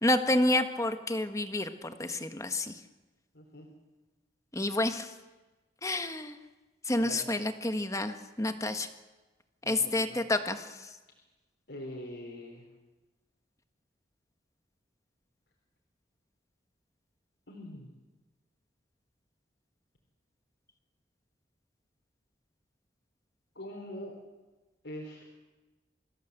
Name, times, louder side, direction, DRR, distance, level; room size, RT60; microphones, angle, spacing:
voice 1, 0.0-2.7 4.5-5.1 5.8-6.4 6.9-8.9 9.7-10.9, left 1 dB, 15° left, 8 dB, 1.4 m, -29 dB
voice 2, 3.3-3.7 7.0-7.3 9.6-10.2 11.7-12.7 17.5-17.9 23.6-24.2 24.8-25.3, left 1 dB, 75° left, -1 dB, 3.9 m, -43 dB
26.5 x 16.0 x 8.1 m, 1.2 s
head